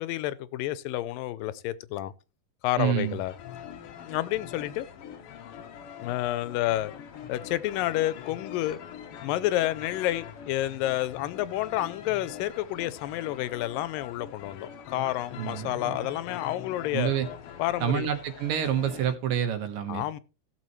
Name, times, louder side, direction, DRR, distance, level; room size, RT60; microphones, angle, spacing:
voice 1, 0.0-2.1 2.6-3.3 4.0-4.9 6.0-6.9 7.3-8.8 9.2-17.1 17.6-18.1 19.9-20.2, left 14 dB, 90° left, 2.4 m, -29 dB
voice 2, 2.8-3.2 15.4-16.1 16.9-17.3 17.8-20.0, right 9 dB, 80° right, 3.0 m, -28 dB
sound 1, 3.0-19.2, left 9 dB, 70° left, 1.4 m, -43 dB
16.5 x 6.9 x 3.1 m
omnidirectional pair, 3.9 m